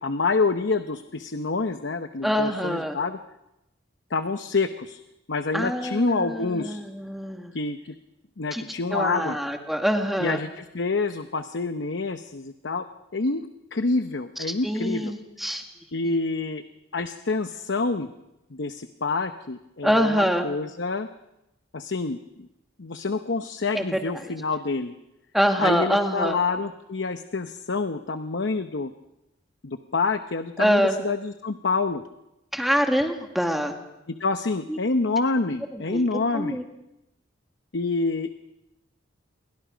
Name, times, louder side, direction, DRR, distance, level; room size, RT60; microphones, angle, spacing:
voice 1, 0.0-3.2 4.1-5.0 5.3-6.8 7.5-7.9 8.4-9.4 10.2-12.9 13.1-15.1 15.9-16.6 16.9-18.1 18.5-21.1 21.7-22.5 22.8-24.9 25.6-28.9 29.6-32.0 34.1-36.6 37.7-38.4, left 3 dB, 65° left, 9 dB, 0.8 m, -27 dB
voice 2, 2.2-3.0 5.5-7.5 8.5-8.6 8.9-10.4 14.6-15.6 19.8-20.5 23.7-23.8 24.1-24.3 25.3-26.4 30.6-31.0 32.5-33.7 34.7-34.8 35.7-36.6, equal, ahead, 3 dB, 1.9 m, -25 dB
28.5 x 22.5 x 5.1 m, 0.91 s
head